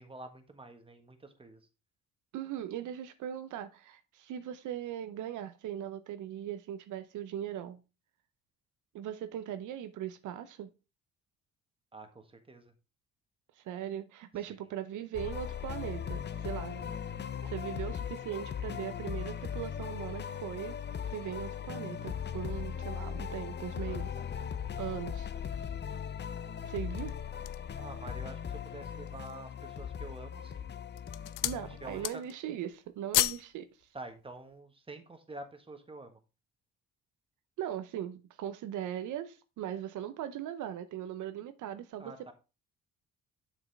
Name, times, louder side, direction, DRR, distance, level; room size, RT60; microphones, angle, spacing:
voice 1, 0.0-1.6 11.9-12.7 23.8-24.3 27.8-30.7 31.8-32.1 33.9-36.2 42.0-42.3, right 2 dB, 20° right, 1.5 m, -48 dB
voice 2, 2.3-7.8 8.9-10.7 13.6-16.9 17.4-20.8 21.1-24.4 24.8-25.7 26.6-27.1 31.4-33.7 37.6-42.3, right 10 dB, 80° right, 0.7 m, -39 dB
sound 1, 15.1-32.1, left 8 dB, 35° left, 0.6 m, -38 dB
sound 2, 26.8-27.8 28.4-28.5 28.9-29.5 30.2-30.5 30.9-31.6 31.9-32.4 32.7-33.5 33.8-34.0, left 17 dB, 90° left, 0.5 m, -32 dB
7.3 x 6.0 x 3.5 m
cardioid pair, 90°, 30 cm